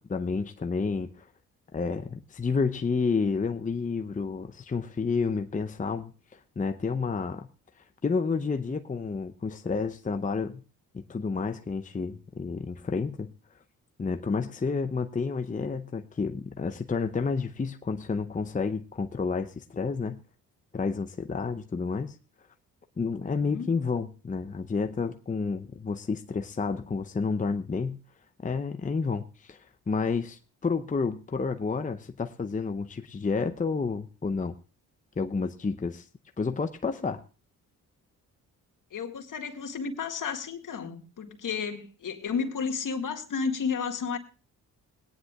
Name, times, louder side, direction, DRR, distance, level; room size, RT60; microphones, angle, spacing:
voice 1, 0.1-1.3 1.7-7.5 8.0-10.6 10.9-13.3 14.0-20.2 20.7-22.1 23.0-28.0 28.4-34.6 35.2-36.1 36.4-37.2, left 4 dB, 20° left, 0.7 m, -30 dB
voice 2, 23.2-23.7 38.9-44.2, left 5 dB, 55° left, 1.9 m, -32 dB
21.5 x 9.8 x 2.3 m
supercardioid pair, 60°, 37 cm